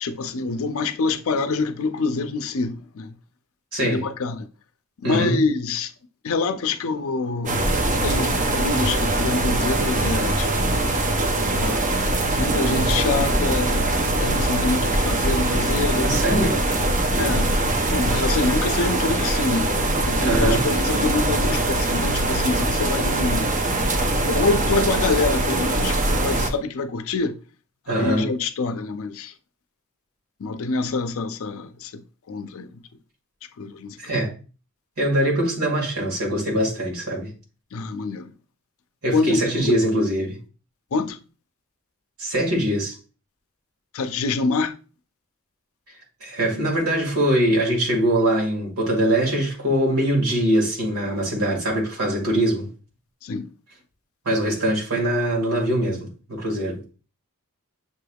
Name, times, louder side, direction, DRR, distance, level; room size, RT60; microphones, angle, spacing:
voice 1, 0.0-3.1 3.8-4.5 5.0-5.9 6.2-7.6 8.0-10.8 11.5-11.8 12.3-13.9 14.2-16.6 17.2-17.5 17.9-19.7 20.1-23.5 24.2-27.3 27.9-29.3 30.4-32.0 32.3-32.7 33.6-34.0 37.7-38.3 39.1-39.8 40.9-41.2 43.9-44.7 53.2-53.5, left 3 dB, 65° left, 0.5 m, -26 dB
voice 2, 3.7-4.1 5.0-5.4 16.0-16.6 20.2-20.7 27.9-28.3 34.0-34.3 35.0-37.3 39.0-40.4 42.2-43.0 46.2-52.7 54.3-56.8, right 1 dB, 80° right, 1.9 m, -22 dB
sound 1, 7.5-26.5, right 2 dB, 35° right, 0.6 m, -22 dB
6.7 x 3.4 x 2.3 m
head